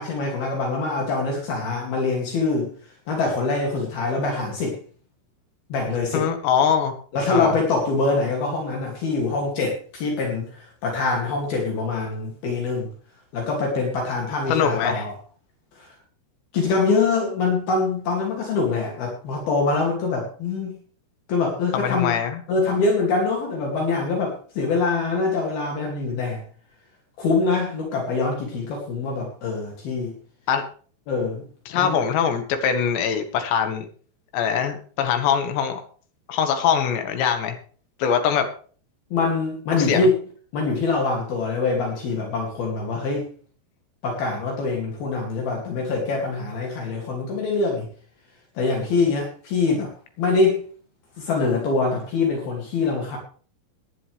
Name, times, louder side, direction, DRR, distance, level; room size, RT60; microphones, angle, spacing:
voice 1, 0.0-2.7 3.1-4.8 5.7-6.3 7.1-12.9 13.3-15.1 15.8-15.9 16.5-20.8 21.3-22.2 22.5-26.4 27.2-30.2 31.1-31.4 31.8-32.0 39.1-40.2 40.5-43.3 44.0-47.9 48.6-49.9 50.2-50.6 51.2-53.2, left 3 dB, 60° left, 0 dB, 4.3 m, -24 dB
voice 2, 6.1-6.9 7.3-7.5 14.5-15.0 21.7-22.4 30.5-30.6 31.7-33.9 34.3-35.8 36.3-37.6 38.0-38.5 39.7-40.1, left 7 dB, 80° left, 6 dB, 3.8 m, -22 dB
18.0 x 11.0 x 3.4 m, 0.42 s
omnidirectional pair, 5.0 m